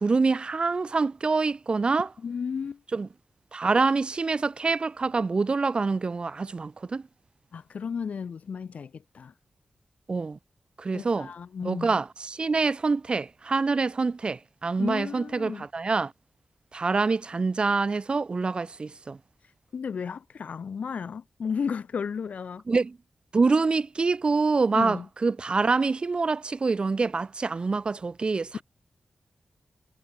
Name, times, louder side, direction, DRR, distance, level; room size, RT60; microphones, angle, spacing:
voice 1, 0.0-2.1 2.9-3.1 3.5-7.0 10.1-10.4 10.8-11.3 11.6-16.1 16.7-19.2 22.7-23.0 23.3-28.6, right 4 dB, 45° right, 0.4 m, -26 dB
voice 2, 2.2-2.8 7.5-9.3 10.9-12.0 14.8-15.7 19.7-22.6 24.7-25.1, left 6 dB, 80° left, 1.0 m, -33 dB
wide cardioid pair, 75°, 2 cm